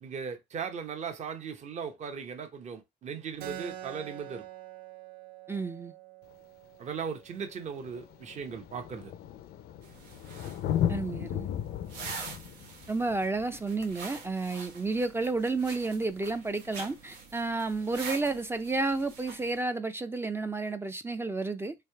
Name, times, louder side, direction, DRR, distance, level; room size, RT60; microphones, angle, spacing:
voice 1, 0.0-4.4 6.8-9.1, right 6 dB, 45° right, 0.9 m, -38 dB
Keyboard (musical), 3.4-8.5, right 12 dB, 70° right, 0.7 m, -46 dB
voice 2, 5.5-5.9 10.9-11.5 12.9-21.7, right 3 dB, 15° right, 0.4 m, -31 dB
Thunder, 6.3-6.4 7.4-7.5 7.7-15.0 16.7-16.8, left 10 dB, 65° left, 0.5 m, -36 dB
sound 1, 9.8-19.6, right 5 dB, 90° right, 1.1 m, -45 dB
3.4 x 2.8 x 4.4 m
cardioid pair, 110°, 17 cm